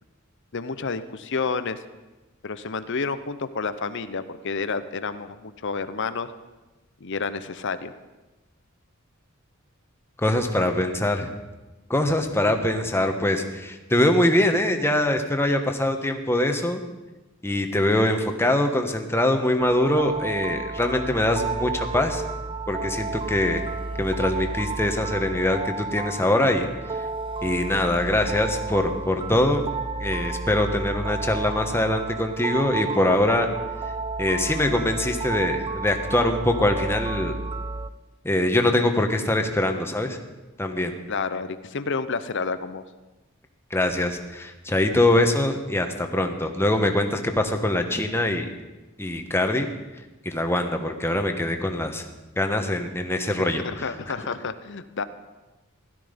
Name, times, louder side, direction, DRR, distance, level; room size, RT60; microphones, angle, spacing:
voice 1, 0.5-1.8 2.4-6.3 7.0-7.9 41.1-42.8 53.3-55.0, left 4 dB, 60° left, 13 dB, 0.8 m, -30 dB
voice 2, 10.2-11.3 11.9-16.8 17.4-22.2 22.7-23.7 24.0-26.7 27.4-29.6 30.0-33.5 34.2-37.4 38.2-40.2 40.6-40.9 43.7-48.5 49.0-49.7 50.2-52.0 52.4-54.1, left 1 dB, 10° left, 5 dB, 1.3 m, -23 dB
sound 1, 19.6-37.9, right 3 dB, 25° right, 0.4 m, -32 dB
16.5 x 12.5 x 5.2 m, 1.1 s
head